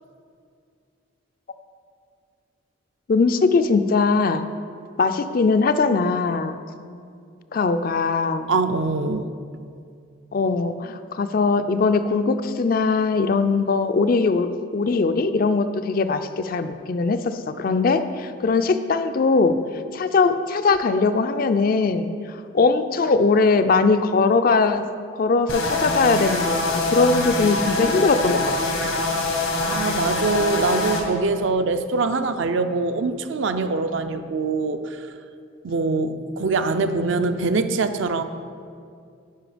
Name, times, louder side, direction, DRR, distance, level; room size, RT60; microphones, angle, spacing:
voice 1, 3.1-4.4 5.0-6.6 7.5-8.5 10.3-19.6 19.9-24.8 25.1-28.9, left 4 dB, 45° left, 10 dB, 0.3 m, -21 dB
voice 2, 8.5-9.3 29.6-35.1 35.6-38.2, right 3 dB, 65° right, 9 dB, 0.5 m, -23 dB
sound 1, 25.5-31.0, left 2 dB, 85° left, 1.3 m, -24 dB
10.0 x 5.2 x 5.0 m, 2.3 s
head